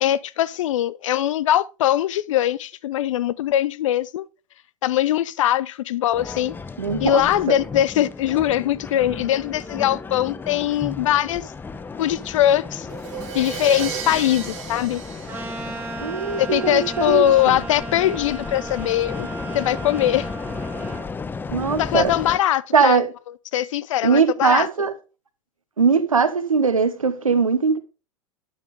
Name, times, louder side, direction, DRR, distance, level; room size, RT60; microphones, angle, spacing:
voice 1, 0.0-4.2 4.8-6.5 7.0-11.5 12.0-12.9 13.3-15.0 16.4-19.3 19.5-20.3 21.8-23.0 23.5-24.7, left 12 dB, 70° left, 0.4 m, -21 dB
sound 1, 6.1-22.4, left 4 dB, 10° left, 0.4 m, -34 dB
voice 2, 6.8-7.6 16.0-17.6 21.5-22.1 22.7-23.1 24.0-25.0 25.8-27.8, right 5 dB, 90° right, 0.8 m, -20 dB
Crash cymbal, 12.9-16.7, right 8 dB, 40° right, 2.2 m, -34 dB
sound 2, 15.3-21.1, right 3 dB, 15° right, 2.4 m, -35 dB
8.9 x 5.9 x 3.4 m
figure-of-eight pair, 90°, 17 cm